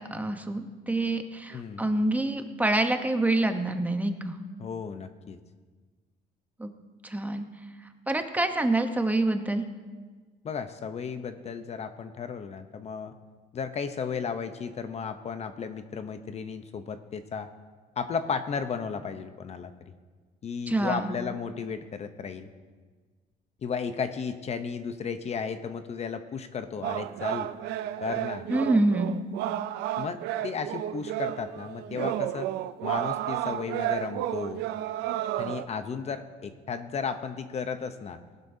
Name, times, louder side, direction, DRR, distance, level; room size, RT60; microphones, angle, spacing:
voice 1, 0.0-4.3 6.6-6.7 7.0-7.4 8.1-9.6 20.7-21.1 28.5-29.2, right 2 dB, 10° right, 6 dB, 0.9 m, -26 dB
voice 2, 1.5-1.9 4.6-5.4 10.4-13.1 13.5-17.5 18.0-19.7 20.4-22.5 23.6-27.5 28.0-28.4 30.0-32.5 32.8-34.7 35.4-38.2, left 6 dB, 40° left, 9 dB, 0.7 m, -34 dB
sound 1, 26.8-35.7, right 12 dB, 90° right, 0.5 m, -32 dB
18.5 x 11.5 x 2.7 m, 1.4 s
cardioid pair, 110°, 17 cm